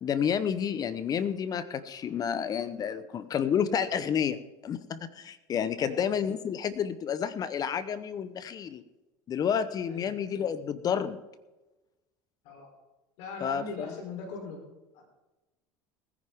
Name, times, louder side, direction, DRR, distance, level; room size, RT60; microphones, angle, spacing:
voice 1, 0.0-8.8 9.3-11.2 13.4-13.9, left 8 dB, 40° left, 14 dB, 0.9 m, -30 dB
voice 2, 5.8-6.1 9.8-10.1 12.4-12.7 13.2-14.6 14.9-15.0, left 4 dB, 70° left, 1 dB, 3.7 m, -40 dB
20.0 x 10.0 x 3.6 m, 1.1 s
supercardioid pair, 95°, 10 cm